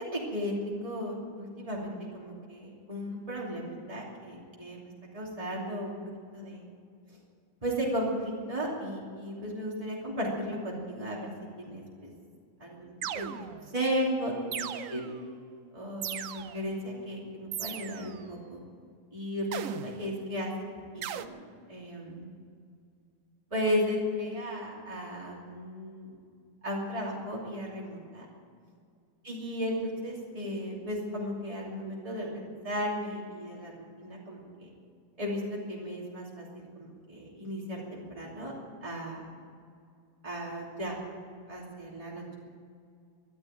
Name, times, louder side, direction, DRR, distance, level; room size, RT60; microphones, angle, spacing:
voice 1, 0.0-6.0 6.3-6.7 7.1-7.2 7.6-11.3 11.6-12.1 12.6-13.5 13.7-15.0 15.7-18.6 19.1-20.5 20.9-21.4 21.7-22.3 23.5-26.1 26.6-28.2 29.2-34.7 35.2-35.4 35.7-36.5 36.7-38.5 38.8-39.2 40.2-40.9 41.5-42.4, equal, 25° right, -4 dB, 3.0 m, -35 dB
sound 1, 13.0-13.7 14.5-15.2 16.0-16.7 17.5-18.2 19.5-20.1 21.0-21.3, right 9 dB, 70° right, 1.0 m, -38 dB
14.0 x 11.5 x 9.1 m, 2.2 s
omnidirectional pair, 1.5 m